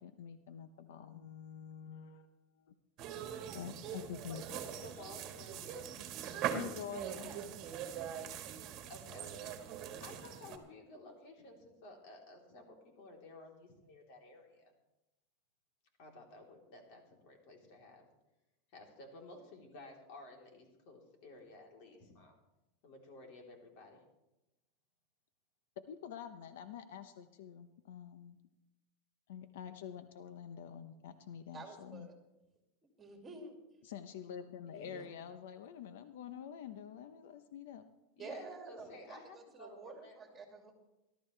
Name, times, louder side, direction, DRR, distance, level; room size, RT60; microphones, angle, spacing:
voice 1, 0.0-2.3 2.7-2.8 3.5-4.4 6.5-8.1 25.8-28.4 29.3-32.1 33.8-37.8, left 8 dB, 75° left, 10 dB, 0.8 m, -47 dB
sound 1, 3.0-10.6, right 9 dB, 40° right, 1.6 m, -42 dB
voice 2, 4.0-5.9 6.2-7.2 8.9-14.7 16.0-18.1 18.7-22.3 22.8-24.0 34.7-35.2 38.2-40.4, left 2 dB, 55° left, 1 dB, 3.5 m, -54 dB
voice 3, 31.5-32.1 33.0-33.6 34.8-35.0 38.2-40.7, right 3 dB, 20° right, 2 dB, 2.5 m, -50 dB
18.5 x 12.5 x 3.3 m, 0.96 s
supercardioid pair, 135°, 0 cm